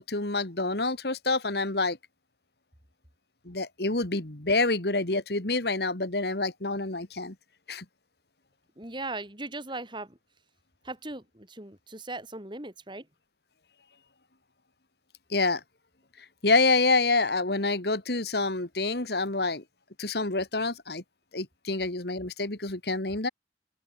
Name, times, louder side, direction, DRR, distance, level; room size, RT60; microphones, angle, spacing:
voice 1, 0.0-2.0 3.5-7.3 7.7-7.8 15.3-15.6 16.4-19.6 20.0-21.0 21.3-23.3, left 3 dB, 60° left, 2.2 m, -27 dB
voice 2, 8.8-10.2 10.8-13.1, right 2 dB, 25° right, 4.3 m, -38 dB
open air
head